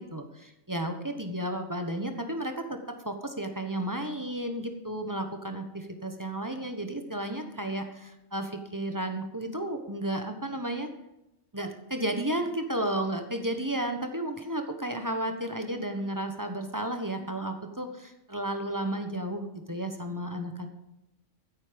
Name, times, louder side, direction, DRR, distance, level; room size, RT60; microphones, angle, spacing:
voice 1, 0.0-10.9 11.5-20.7, right 1 dB, 15° right, 5 dB, 1.1 m, -33 dB
14.5 x 8.4 x 5.2 m, 0.88 s
omnidirectional pair, 1.4 m